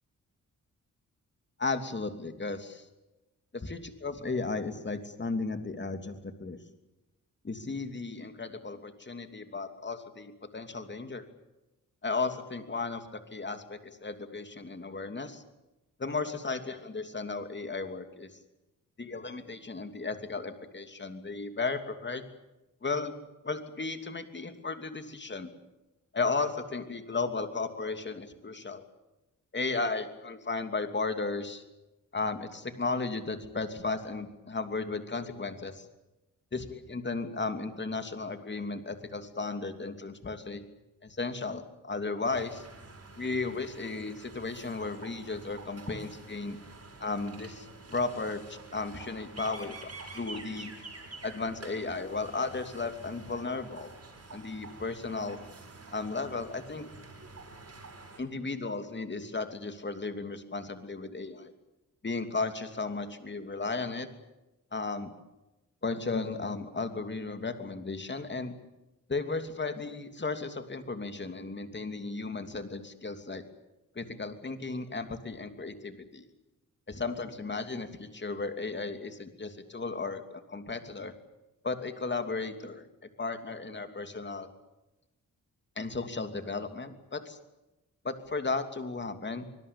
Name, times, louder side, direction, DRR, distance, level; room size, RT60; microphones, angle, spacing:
voice 1, 1.6-2.9 3.5-6.6 7.4-11.2 12.0-15.4 16.0-18.3 19.0-22.2 22.8-23.1 23.4-25.5 26.1-28.8 29.5-31.6 32.1-35.8 36.5-40.6 41.0-42.7 43.2-46.6 47.0-50.7 51.2-53.9 54.3-55.4 55.9-56.9 58.2-61.5 62.0-64.1 64.7-65.1 65.8-68.5 69.1-73.4 73.9-76.2 76.9-81.1 81.6-82.8 83.2-84.5 85.8-87.4 88.0-89.5, left 3 dB, 35° left, 8 dB, 3.0 m, -35 dB
sound 1, 42.3-58.2, right 3 dB, 45° right, 7.2 m, -48 dB
24.5 x 21.0 x 8.9 m, 1.0 s
cardioid pair, 90°, 33 cm